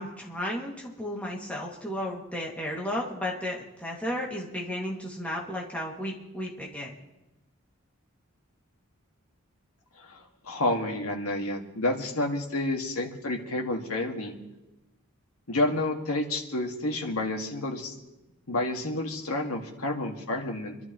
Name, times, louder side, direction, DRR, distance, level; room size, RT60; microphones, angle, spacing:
voice 1, 0.0-7.0, left 1 dB, 5° left, -3 dB, 2.2 m, -34 dB
voice 2, 10.0-14.3 15.5-17.9 18.5-20.8, left 2 dB, 90° left, 2 dB, 1.9 m, -30 dB
26.5 x 12.0 x 3.1 m, 1.0 s
head